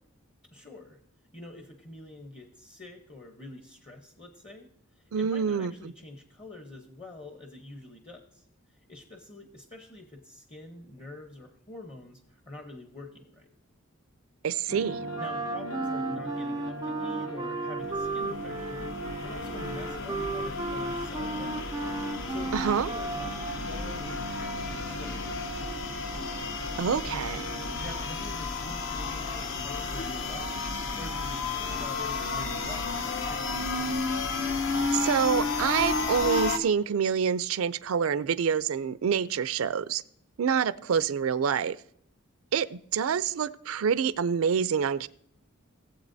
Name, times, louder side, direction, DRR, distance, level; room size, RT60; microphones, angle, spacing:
voice 1, 0.5-1.0 1.3-13.5 15.2-18.9 19.2-21.5 22.3-25.9 27.8-30.6 31.0-33.5, left 2 dB, 30° left, 0.9 m, -46 dB
voice 2, 5.1-5.7 14.4-15.0 22.5-22.9 26.8-27.5 34.9-40.0 40.4-41.8 42.5-45.1, right 7 dB, 80° right, 0.4 m, -27 dB
sound 1, 14.7-27.9, right 1 dB, 90° left, 1.1 m, -38 dB
Wind instrument woodwind instrument, 15.1-23.7, right 3 dB, 20° right, 0.4 m, -35 dB
sound 2, 17.9-36.6, left 4 dB, 60° left, 0.9 m, -33 dB
18.0 x 7.9 x 2.7 m
head